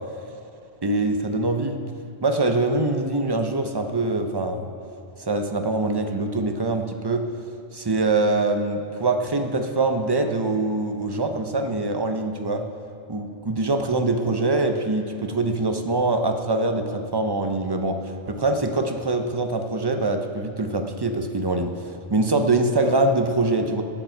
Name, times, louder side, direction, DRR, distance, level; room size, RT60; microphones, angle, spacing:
voice 1, 0.8-1.8 2.2-4.6 5.2-7.3 7.7-12.6 13.1-21.8 22.1-23.8, right 2 dB, 25° right, 5 dB, 0.6 m, -24 dB
16.0 x 9.6 x 4.5 m, 2.5 s
omnidirectional pair, 1.2 m